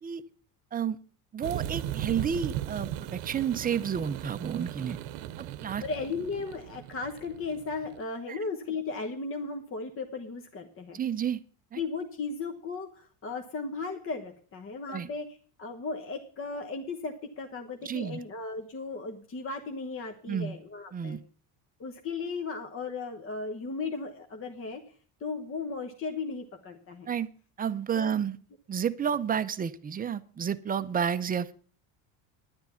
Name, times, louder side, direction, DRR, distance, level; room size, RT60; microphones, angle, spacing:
voice 1, 1.3-5.0 5.4-5.8 8.3-8.4 10.9-11.4 11.7-11.8 14.9-15.1 17.9-18.2 20.3-20.6 20.9-21.2 27.1-27.3 27.6-28.4 28.7-31.5, right 7 dB, 20° right, 11 dB, 0.6 m, -30 dB
sound 1, 1.4-8.0, right 12 dB, 70° right, 0.9 m, -37 dB
voice 2, 5.8-11.0 11.8-21.2 21.8-27.1 27.9-28.1, left 4 dB, 30° left, 6 dB, 1.1 m, -36 dB
10.5 x 9.6 x 5.7 m, 0.43 s
supercardioid pair, 115°, 43 cm